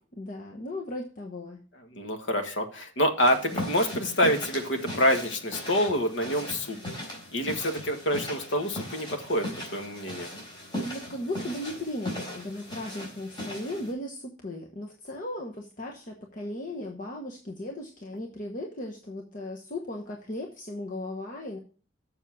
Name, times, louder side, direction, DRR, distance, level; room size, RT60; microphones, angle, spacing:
voice 1, 0.2-1.6 10.8-21.6, left 1 dB, 45° left, 0 dB, 1.1 m, -36 dB
voice 2, 1.9-6.8 7.3-10.3, equal, 70° left, 5 dB, 1.6 m, -27 dB
sound 1, 3.2-13.9, left 1 dB, 25° left, 4.1 m, -38 dB
7.3 x 6.8 x 6.1 m, 0.39 s
head